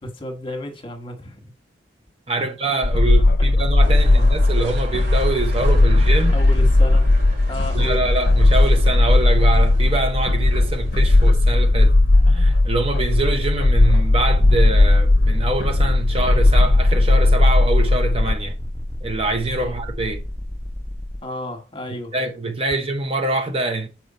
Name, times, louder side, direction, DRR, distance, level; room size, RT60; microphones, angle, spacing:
voice 1, 0.0-1.4 4.0-4.2 6.3-7.1 7.5-8.0 19.6-19.8 21.2-22.1, left 1 dB, 30° left, 1.3 m, -32 dB
voice 2, 2.3-6.4 7.7-11.9 12.3-18.5 19.0-20.2 22.1-23.9, right 2 dB, 30° right, 0.7 m, -25 dB
sound 1, 2.8-18.3, left 2 dB, 55° left, 0.6 m, -16 dB
sound 2, 3.8-11.3, equal, 55° right, 2.4 m, -36 dB
sound 3, 14.4-21.2, left 1 dB, 10° left, 0.5 m, -29 dB
6.7 x 4.4 x 4.1 m
head